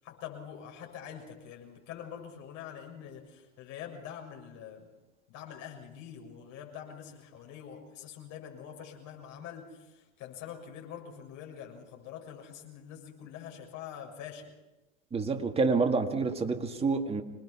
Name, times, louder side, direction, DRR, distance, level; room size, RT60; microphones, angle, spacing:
voice 1, 0.0-4.9 5.3-14.5, left 8 dB, 50° left, 1 dB, 6.9 m, -45 dB
voice 2, 15.1-17.2, right 4 dB, 15° right, 5 dB, 1.9 m, -28 dB
26.0 x 20.0 x 5.9 m, 1.1 s
hypercardioid pair, 115°, 37 cm